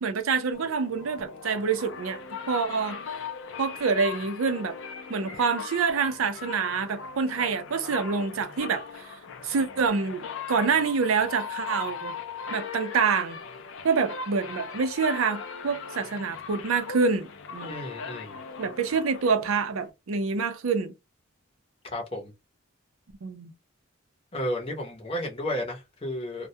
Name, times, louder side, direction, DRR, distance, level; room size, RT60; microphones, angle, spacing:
voice 1, 0.0-2.2 2.5-3.0 3.6-4.7 5.1-8.8 9.4-12.1 12.5-13.4 13.8-17.8 18.6-20.9 23.2-23.5, right 5 dB, 90° right, 0.5 m, -26 dB
sound 1, 0.5-19.9, left 5 dB, 65° left, 0.4 m, -39 dB
voice 2, 17.7-18.4 21.8-22.3 24.3-26.5, left 1 dB, 25° left, 0.7 m, -32 dB
2.2 x 2.1 x 2.7 m
head